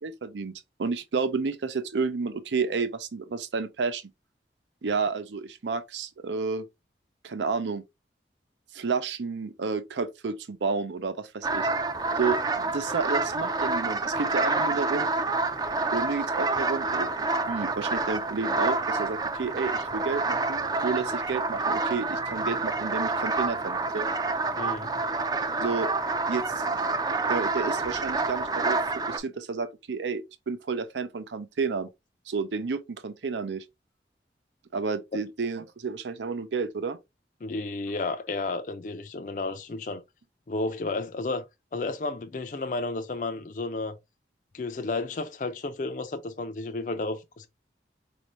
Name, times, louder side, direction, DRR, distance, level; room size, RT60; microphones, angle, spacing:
voice 1, 0.0-0.5 0.8-4.0 4.8-6.7 7.2-7.8 8.7-11.7 12.2-15.1 15.9-24.1 25.6-25.9 26.3-31.9 32.3-33.6 34.7-37.0, right 4 dB, 90° right, 0.5 m, -31 dB
sound 1, 11.4-29.2, right 3 dB, 20° right, 0.4 m, -28 dB
voice 2, 24.6-24.9 37.4-40.0 40.5-41.5 41.7-44.0 44.5-47.5, left 3 dB, 45° left, 0.4 m, -32 dB
4.5 x 2.6 x 3.0 m
head